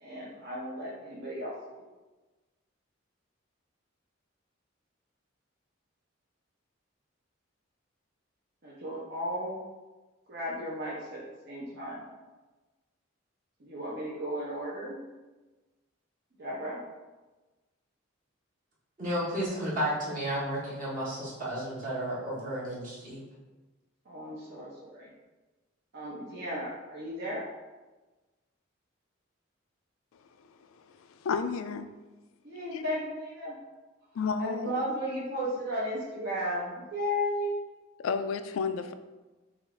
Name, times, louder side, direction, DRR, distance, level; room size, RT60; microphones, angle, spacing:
voice 1, 0.0-1.8 8.6-9.6 10.3-11.2 11.4-12.1 13.6-15.0 16.4-16.8 24.0-25.1 25.9-27.4 32.4-33.6 34.4-37.5, equal, 60° right, -7 dB, 0.8 m, -35 dB
voice 2, 19.0-23.2, equal, 40° right, -7 dB, 1.2 m, -32 dB
voice 3, 31.0-31.9 32.7-32.8 34.1-34.7 38.0-38.9, left 5 dB, 90° left, 10 dB, 0.3 m, -31 dB
5.4 x 2.5 x 3.3 m, 1.2 s
head